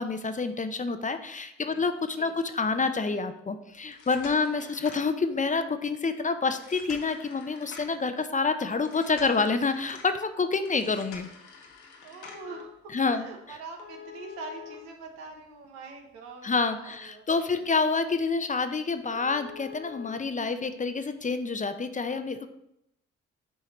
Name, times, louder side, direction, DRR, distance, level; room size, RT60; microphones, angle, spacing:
voice 1, 0.0-11.3 12.9-13.3 16.4-22.5, left 4 dB, 25° left, 9 dB, 0.6 m, -28 dB
sound 1, 3.8-5.6 6.5-8.1 8.9-10.1 10.7-12.6 13.8-15.7 16.1-16.2 16.7-16.8 17.3-17.4 17.7-17.8 18.2-18.3 18.6-18.7 19.1-20.1 21.2-21.3, left 7 dB, 85° left, 0.9 m, -46 dB
voice 2, 12.0-17.2, right 3 dB, 90° right, 3 dB, 0.9 m, -44 dB
7.6 x 4.6 x 3.1 m, 0.79 s
hypercardioid pair, 45°, 30 cm